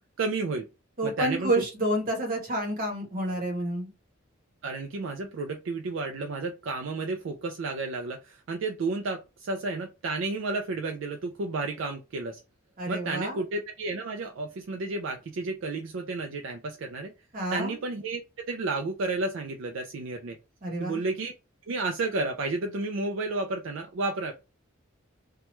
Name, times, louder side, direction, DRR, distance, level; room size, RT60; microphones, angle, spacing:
voice 1, 0.2-0.7 1.0-1.5 4.6-12.4 12.9-17.1 17.5-18.2 18.5-20.4 20.8-21.3 21.7-24.3, right 3 dB, 65° right, 4 dB, 0.4 m, -31 dB
voice 2, 1.0-3.9 12.8-13.4 17.3-17.8 20.6-21.0, right 1 dB, 45° right, 1 dB, 1.0 m, -29 dB
3.0 x 2.3 x 3.1 m, 0.28 s
head